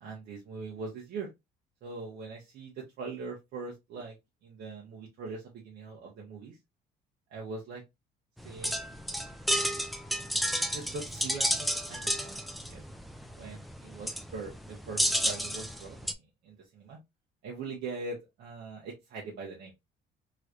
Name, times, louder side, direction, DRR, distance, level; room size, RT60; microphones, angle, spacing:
voice 1, 0.0-1.3 1.8-4.2 4.4-6.6 7.3-7.8 8.4-8.8 10.6-12.4 12.7-12.8 13.4-17.0 17.4-19.7, right 4 dB, 75° right, 1.1 m, -42 dB
sound 1, 8.4-16.1, equal, ahead, 0.4 m, -32 dB
3.1 x 3.1 x 2.5 m
cardioid pair, 110°, 17 cm